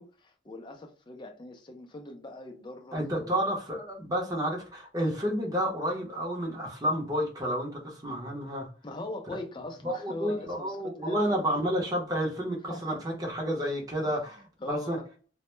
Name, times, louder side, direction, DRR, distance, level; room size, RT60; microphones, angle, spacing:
voice 1, 0.0-3.6 8.8-11.5 12.7-13.0 14.0-14.1 14.6-14.9, left 2 dB, 25° left, 0.4 m, -41 dB
voice 2, 2.9-8.7 9.8-15.0, equal, 20° right, 0.7 m, -30 dB
2.1 x 2.0 x 3.0 m
head